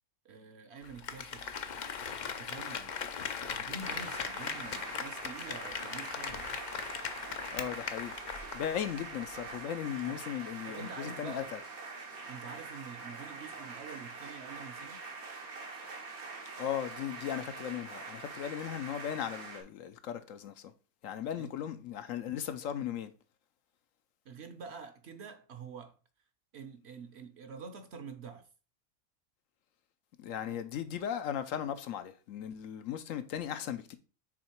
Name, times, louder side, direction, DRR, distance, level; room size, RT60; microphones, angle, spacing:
voice 1, 0.2-1.5 2.3-3.0 3.4-6.6 10.0-10.2 10.6-11.5 12.3-15.0 21.4-21.5 24.2-26.0 26.5-28.5, right 5 dB, 55° right, 0.9 m, -47 dB
Applause, 0.8-9.0 9.3-9.4, left 6 dB, 55° left, 0.5 m, -39 dB
sound 1, 3.8-19.6, right 4 dB, 90° right, 1.9 m, -44 dB
voice 2, 7.5-8.1 8.5-11.6 16.6-20.7 21.0-23.1 30.2-34.0, left 9 dB, 70° left, 1.0 m, -37 dB
6.4 x 3.9 x 4.4 m
omnidirectional pair, 1.5 m